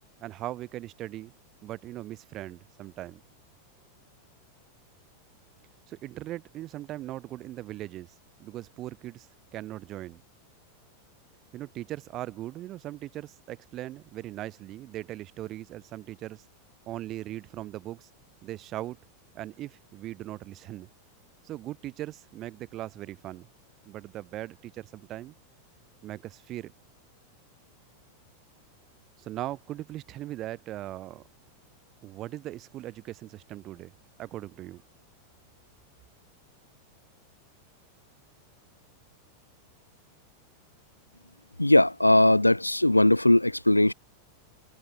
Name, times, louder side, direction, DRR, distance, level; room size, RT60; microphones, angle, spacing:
voice 1, 0.2-1.3 1.6-3.2 5.9-8.1 8.4-9.3 9.5-10.2 11.5-16.4 16.9-18.1 18.4-19.0 19.3-20.9 21.4-23.5 23.8-25.3 26.0-26.7 29.2-31.2 32.0-33.9 34.2-34.8, right 14 dB, 35° right, 6.7 m, -39 dB
voice 2, 41.6-43.9, left 1 dB, 85° left, 0.5 m, -19 dB
figure-of-eight pair, 90°, 0 cm